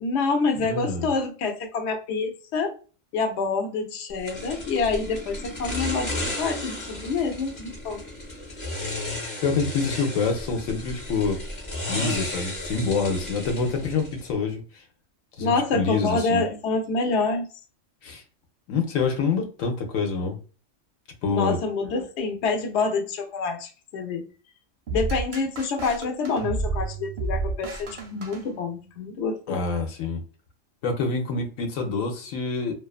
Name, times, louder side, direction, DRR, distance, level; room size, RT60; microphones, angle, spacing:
voice 1, 0.0-2.7 3.1-8.0 15.4-17.4 21.3-24.2 24.9-29.6, left 4 dB, 65° left, 0.8 m, -27 dB
voice 2, 0.6-1.1 9.4-11.4 11.9-14.6 15.4-16.4 18.0-18.2 18.7-20.4 21.2-21.6 29.5-30.2 30.8-32.7, left 4 dB, 85° left, 1.0 m, -26 dB
sound 1, 4.3-14.3, left 1 dB, 40° left, 1.0 m, -33 dB
sound 2, 24.9-29.0, right 3 dB, 55° right, 0.6 m, -31 dB
2.4 x 2.3 x 2.3 m
omnidirectional pair, 1.4 m